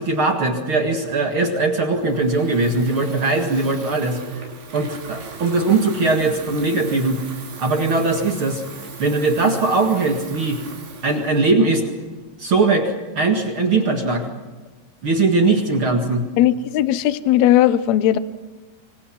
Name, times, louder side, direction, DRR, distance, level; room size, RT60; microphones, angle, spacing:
voice 1, 0.0-4.2 4.7-7.2 7.6-8.6 9.0-10.6 11.0-11.8 12.4-14.3 15.0-16.2, right 3 dB, 45° right, 3 dB, 2.1 m, -20 dB
Water tap faucet / Fill (with liquid), 2.0-12.2, right 4 dB, 85° right, 5.6 m, -39 dB
voice 2, 16.4-18.2, left 12 dB, 85° left, 13 dB, 1.6 m, -17 dB
25.5 x 25.5 x 6.0 m, 1.2 s
omnidirectional pair, 4.4 m